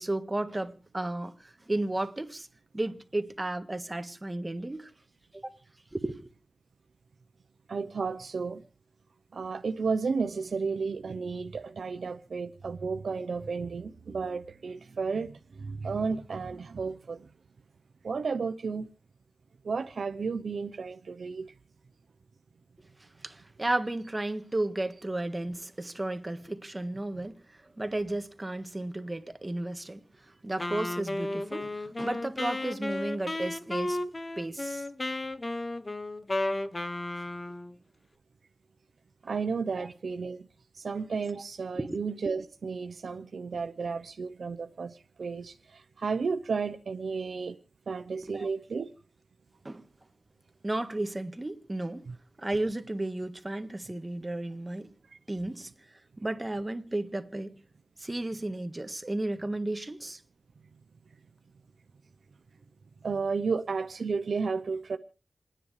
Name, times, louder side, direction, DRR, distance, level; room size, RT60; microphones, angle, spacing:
voice 1, 0.0-2.5 2.7-4.9 5.3-5.6 5.9-6.2 23.2-27.3 27.8-30.0 30.4-34.0 34.4-34.8 39.8-39.9 41.8-42.0 48.3-48.5 49.6-49.8 50.6-52.0 52.4-54.9 55.3-55.7 56.2-57.5 58.0-60.2, right 1 dB, 25° right, 1.5 m, -33 dB
voice 2, 7.7-8.6 9.3-17.3 18.0-18.9 19.6-21.5 27.2-27.3 39.2-40.5 40.7-47.6 47.9-48.9 52.1-52.2 63.0-65.0, right 5 dB, 85° right, 0.7 m, -33 dB
Wind instrument woodwind instrument, 30.6-37.7, left 2 dB, 35° left, 1.0 m, -33 dB
28.5 x 10.0 x 3.2 m
wide cardioid pair, 60°, 0 cm